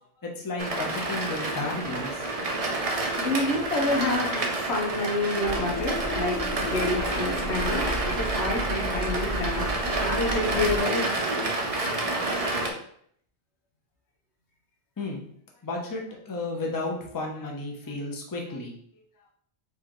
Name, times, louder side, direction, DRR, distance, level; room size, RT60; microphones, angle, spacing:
voice 1, 0.0-2.3 15.0-15.2 15.6-19.0, left 2 dB, 20° left, 0 dB, 0.7 m, -33 dB
sound 1, 0.6-12.7, right 2 dB, 40° right, 0.7 m, -29 dB
voice 2, 3.2-11.1, left 2 dB, 85° left, 1 dB, 1.3 m, -28 dB
sound 2, 5.4-10.8, right 1 dB, 65° left, 1.4 m, -34 dB
4.6 x 3.3 x 3.0 m, 0.65 s
omnidirectional pair, 1.1 m